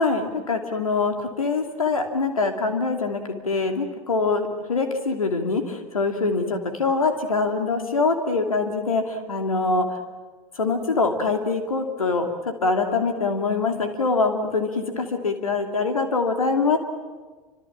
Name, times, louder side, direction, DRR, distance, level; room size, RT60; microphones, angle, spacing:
voice 1, 0.0-10.0 10.5-16.8, left 3 dB, 80° left, 5 dB, 2.8 m, -24 dB
28.5 x 26.0 x 7.5 m, 1.4 s
figure-of-eight pair, 75°, 18 cm